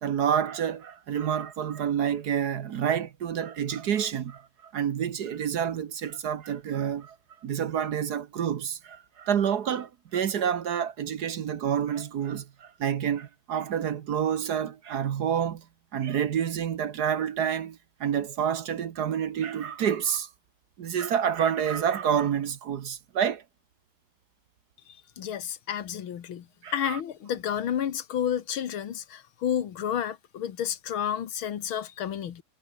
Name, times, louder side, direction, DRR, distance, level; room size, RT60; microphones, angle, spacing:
voice 1, 0.0-7.2 7.4-15.6 15.9-20.3 20.8-23.4 26.6-27.0, right 8 dB, 55° right, 1.4 m, -28 dB
voice 2, 25.2-26.5 26.7-32.4, left 9 dB, 85° left, 2.2 m, -31 dB
omnidirectional pair, 2.2 m